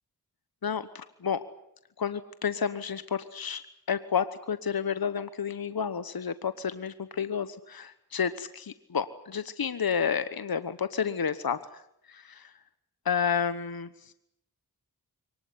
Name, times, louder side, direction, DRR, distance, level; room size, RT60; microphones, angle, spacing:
voice 1, 0.6-1.4 2.0-3.6 3.9-11.8 12.1-12.5 13.0-14.1, left 7 dB, 65° left, 13 dB, 1.2 m, -31 dB
23.5 x 19.0 x 9.8 m, 0.77 s
cardioid pair, 40°, 40 cm